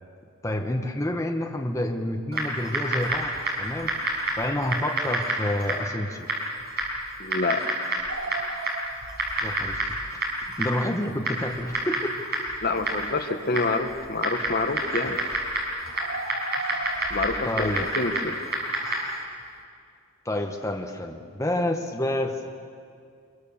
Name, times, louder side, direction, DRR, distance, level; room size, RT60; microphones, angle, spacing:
voice 1, 0.4-4.0 4.4-6.3 9.4-9.8 10.6-12.1 17.4-17.9 20.2-22.5, left 1 dB, 15° left, 3 dB, 1.1 m, -28 dB
Typing, 2.3-19.2, right 1 dB, 50° right, 5.6 m, -30 dB
voice 2, 7.2-7.6 12.6-15.2 17.1-18.4, left 3 dB, 45° left, 7 dB, 1.2 m, -27 dB
sound 1, 8.1-9.8 10.1-10.2 10.7-10.8 11.5-11.6 12.7-13.7 14.0-14.3 14.7-14.8 15.2-15.3 15.4-15.5 15.9-19.0 19.3-19.6, right 3 dB, 80° right, 1.7 m, -38 dB
26.0 x 22.5 x 7.2 m, 2.3 s
head